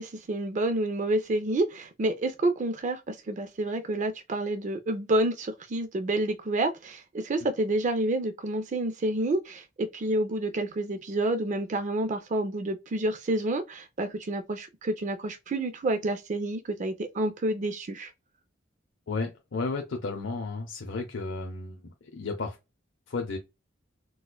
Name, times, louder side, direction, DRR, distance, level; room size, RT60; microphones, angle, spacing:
voice 1, 0.0-18.1, right 1 dB, 40° right, 0.4 m, -29 dB
voice 2, 19.1-22.6 23.1-23.4, left 3 dB, 75° left, 0.7 m, -33 dB
4.1 x 2.2 x 2.3 m
head